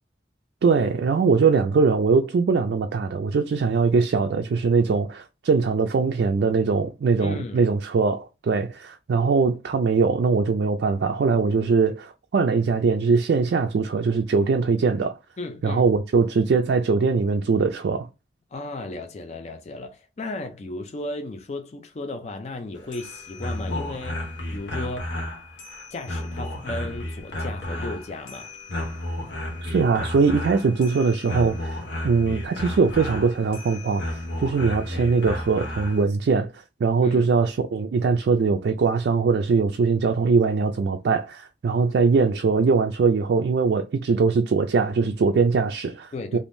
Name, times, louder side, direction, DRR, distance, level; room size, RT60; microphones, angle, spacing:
voice 1, 0.6-15.1 15.6-18.1 29.6-36.5 36.8-46.4, right 4 dB, 65° right, 0.3 m, -21 dB
voice 2, 7.2-7.7 15.4-15.9 18.5-25.2 25.9-28.5 37.0-37.3 46.1-46.4, left 2 dB, 35° left, 0.4 m, -35 dB
sound 1, 22.8-36.0, left 1 dB, 80° left, 0.9 m, -33 dB
3.5 x 2.5 x 2.6 m
head